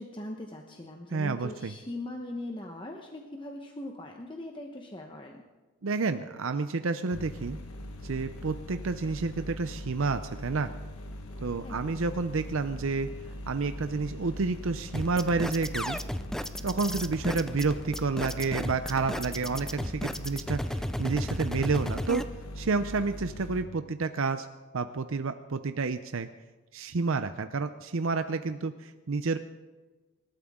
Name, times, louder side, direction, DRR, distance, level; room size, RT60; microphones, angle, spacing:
voice 1, 0.0-5.4 11.6-12.0, left 1 dB, 20° left, 2 dB, 1.0 m, -40 dB
voice 2, 1.1-1.7 5.8-7.6 8.0-10.7 11.4-13.1 13.5-16.0 16.6-20.6 21.0-22.2 22.6-24.5 24.7-26.3 26.7-29.4, right 4 dB, 65° right, 9 dB, 0.6 m, -30 dB
sound 1, 7.1-23.6, left 1 dB, 80° left, 1.4 m, -41 dB
sound 2, 14.9-22.2, equal, ahead, 0.4 m, -34 dB
25.5 x 12.5 x 3.7 m, 1.3 s
head